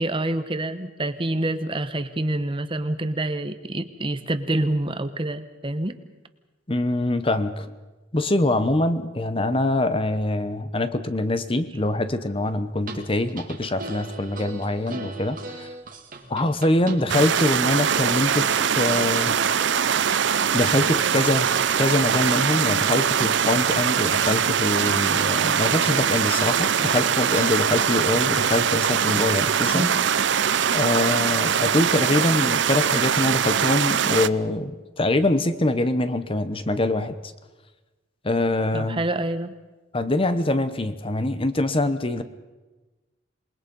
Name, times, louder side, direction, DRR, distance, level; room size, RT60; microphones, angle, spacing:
voice 1, 0.0-6.0 29.7-30.0 38.7-39.5, right 1 dB, 25° right, 10 dB, 1.0 m, -27 dB
voice 2, 6.7-7.7 8.1-15.7 16.3-19.4 20.5-29.9 30.7-37.2 38.2-39.0 39.9-42.2, left 2 dB, 30° left, 11 dB, 1.0 m, -24 dB
sound 1, 12.8-28.2, right 3 dB, 45° right, 2.3 m, -38 dB
sound 2, 17.1-34.3, right 8 dB, 65° right, 0.6 m, -22 dB
27.5 x 20.5 x 5.4 m, 1.2 s
head